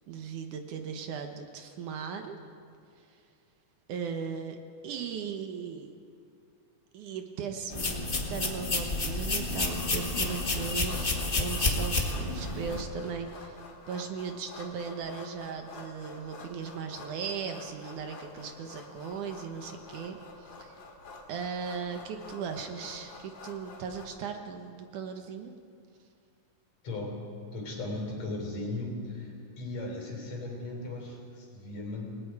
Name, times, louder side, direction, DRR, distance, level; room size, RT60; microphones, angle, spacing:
voice 1, 0.1-2.4 3.9-4.6 4.8-5.9 6.9-13.6 13.9-20.8 21.3-25.5, right 6 dB, 70° right, 5 dB, 2.5 m, -38 dB
sound 1, 7.7-12.8, left 2 dB, 35° left, 0.8 m, -30 dB
sound 2, 9.7-24.0, left 3 dB, 80° left, 3.9 m, -48 dB
voice 2, 26.8-27.2 27.5-32.2, left 2 dB, 55° left, 0 dB, 4.8 m, -37 dB
29.0 x 19.0 x 4.8 m, 2.4 s
omnidirectional pair, 3.8 m